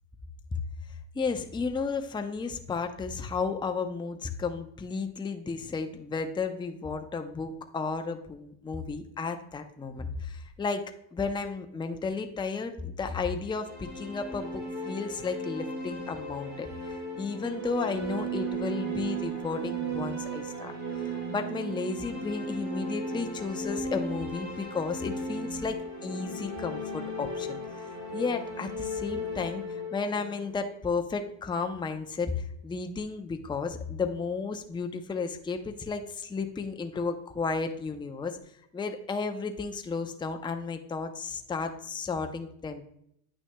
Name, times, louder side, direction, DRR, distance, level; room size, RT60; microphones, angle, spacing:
voice 1, 0.9-10.8 11.1-38.4 38.7-42.8, left 4 dB, 10° left, 6 dB, 0.5 m, -33 dB
sound 1, 13.4-31.3, right 1 dB, 35° right, 1.8 m, -36 dB
9.3 x 6.1 x 2.2 m, 0.73 s
supercardioid pair, 100°, 48 cm